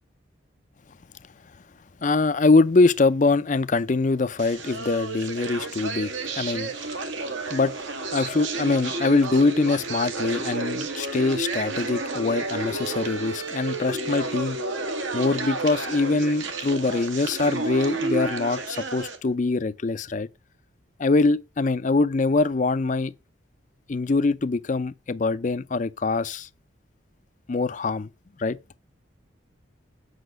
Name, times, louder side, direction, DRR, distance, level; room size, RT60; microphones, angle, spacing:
voice 1, 2.0-6.1 6.4-6.7 7.5-7.8 8.1-14.6 15.1-20.3 21.0-23.1 23.9-26.5 27.5-28.1 28.4-28.6, left 3 dB, 40° left, 0.4 m, -23 dB
sound 1, 4.4-19.2, right 3 dB, 75° right, 1.6 m, -31 dB
8.0 x 5.8 x 6.5 m
head